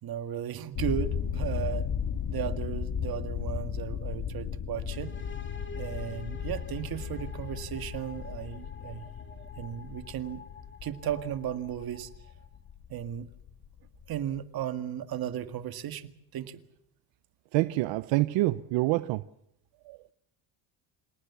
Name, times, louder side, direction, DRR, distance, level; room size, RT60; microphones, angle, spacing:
voice 1, 0.0-1.9 2.3-5.1 5.8-9.1 9.6-10.4 10.8-12.1 12.9-13.3 14.1-16.6, right 10 dB, 55° right, 2.0 m, -35 dB
sound 1, 0.7-14.4, left 8 dB, 50° left, 1.8 m, -35 dB
sound 2, 4.9-12.6, left 4 dB, 25° left, 2.6 m, -50 dB
voice 2, 17.5-19.2 19.9-20.0, right 19 dB, 80° right, 0.8 m, -26 dB
27.0 x 18.5 x 7.1 m
cardioid pair, 115°, 44 cm